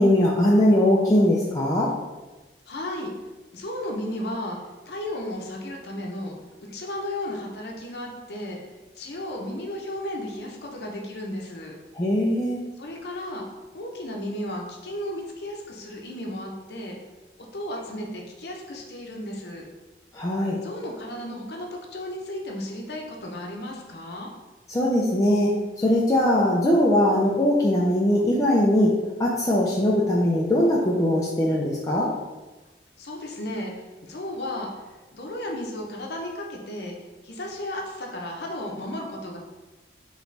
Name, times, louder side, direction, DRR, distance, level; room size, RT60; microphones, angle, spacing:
voice 1, 0.0-1.9 11.9-12.6 20.1-20.6 24.7-25.5 25.8-28.9 29.2-32.1, left 1 dB, 20° left, -5 dB, 0.4 m, -20 dB
voice 2, 2.7-3.1 3.5-4.6 4.9-6.3 6.7-8.6 9.0-11.7 12.8-13.4 13.7-16.9 17.5-19.7 20.6-24.3 33.0-33.7 34.0-34.7 35.1-36.9 37.2-39.4, left 1 dB, 70° left, 0 dB, 0.7 m, -34 dB
3.8 x 3.0 x 3.3 m, 1.2 s
head